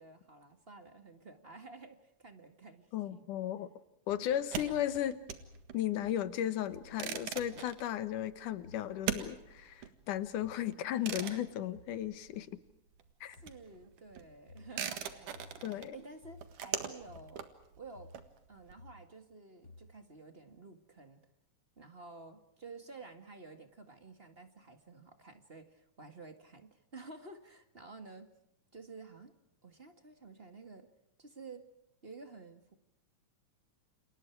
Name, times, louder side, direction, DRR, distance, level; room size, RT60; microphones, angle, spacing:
voice 1, 0.0-3.3 4.2-4.4 13.3-17.5 17.8-18.1 18.5-21.3 21.8-28.3 28.7-29.3 29.6-30.9 31.2-31.7 32.0-32.7, right 3 dB, 25° right, 7 dB, 1.8 m, -52 dB
voice 2, 2.9-3.7 4.1-5.2 5.7-12.5 13.2-13.4 15.6-16.0, left 11 dB, 85° left, 13 dB, 2.8 m, -35 dB
sound 1, 4.1-4.4 4.7-5.1 5.4-5.8 6.0-6.4 6.7-7.0 7.4-7.6 8.6-8.8 9.6-9.7 10.4-10.6 11.1-11.3 11.7-11.9 12.3-12.4 13.4-13.5 14.5-14.7 15.3-15.6 16.2-16.5 17.1-17.3 18.0-18.2 18.8-19.0 19.6-19.9, left 2 dB, 35° left, 4.6 m, -56 dB
sound 2, 4.3-12.7 12.9-18.7, right 9 dB, 85° right, 3.3 m, -42 dB
29.5 x 28.5 x 4.8 m, 0.80 s
omnidirectional pair, 3.5 m